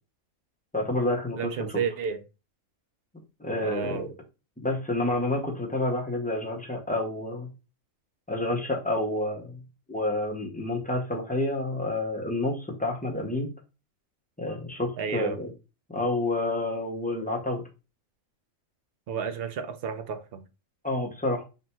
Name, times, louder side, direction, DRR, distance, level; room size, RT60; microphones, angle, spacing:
voice 1, 0.7-1.5 3.4-4.1 4.6-7.5 8.3-9.6 9.9-13.5 14.4-15.5 15.9-17.6 20.8-21.4, left 2 dB, 10° left, -1 dB, 0.4 m, -29 dB
voice 2, 1.3-2.2 3.6-4.1 15.0-15.4 19.1-20.4, right 6 dB, 60° right, 9 dB, 0.6 m, -31 dB
4.0 x 2.2 x 4.2 m, 0.29 s
omnidirectional pair, 1.5 m